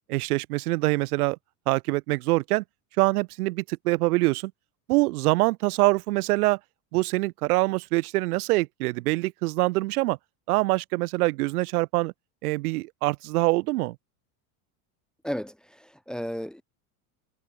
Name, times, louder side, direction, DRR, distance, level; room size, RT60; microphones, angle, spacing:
voice 1, 0.1-1.4 1.7-2.6 3.0-4.5 4.9-6.6 6.9-10.2 10.5-12.1 12.4-14.0, right 21 dB, 75° right, 3.9 m, -24 dB
voice 2, 15.2-16.6, equal, ahead, 2.0 m, -34 dB
cardioid pair, 175°, 45 cm